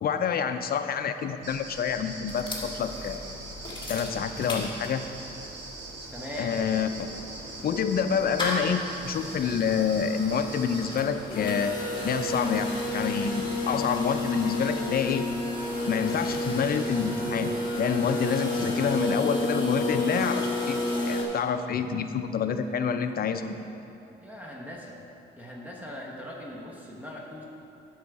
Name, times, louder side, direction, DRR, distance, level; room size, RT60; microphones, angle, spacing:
voice 1, 0.0-3.2 3.9-5.0 6.4-6.9 7.6-11.8 12.0-15.2 15.9-17.5 17.8-20.8 21.1-23.6, left 7 dB, 50° left, 9 dB, 0.5 m, -27 dB
sound 1, 1.4-11.0, right 2 dB, 65° right, 1.5 m, -42 dB
sound 2, 2.3-5.3 5.7-5.8 5.9-21.2, left 2 dB, 25° left, 1.6 m, -31 dB
sound 3, 2.5-20.9, right 2 dB, 80° right, 1.1 m, -45 dB
voice 2, 6.1-6.6 24.2-25.0 25.4-27.5, left 1 dB, 10° right, -2 dB, 1.1 m, -40 dB
8.2 x 6.3 x 4.7 m, 2.8 s
cardioid pair, 90°, 20 cm